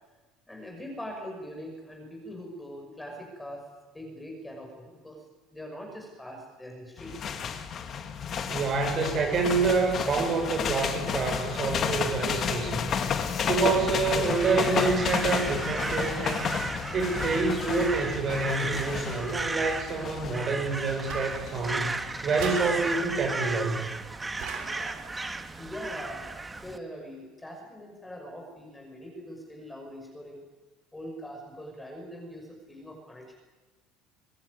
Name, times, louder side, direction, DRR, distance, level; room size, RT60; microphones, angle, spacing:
voice 1, 0.5-3.6 3.9-5.2 5.5-7.1 7.6-7.7 25.6-30.4 30.9-33.3, equal, 5° left, 2 dB, 6.1 m, -42 dB
sound 1, 7.0-22.9, left 7 dB, 35° left, 2.0 m, -32 dB
voice 2, 8.5-12.9 13.4-16.5 16.9-21.9 22.2-23.9, right 4 dB, 35° right, 3 dB, 6.3 m, -27 dB
Crow, 14.1-26.8, right 3 dB, 10° right, 1.4 m, -35 dB
sound 2, 21.1-21.9 22.4-23.3 24.4-25.2, right 6 dB, 65° right, 5.9 m, -40 dB
23.0 x 19.5 x 9.7 m, 1.2 s
cardioid pair, 150°, 0 cm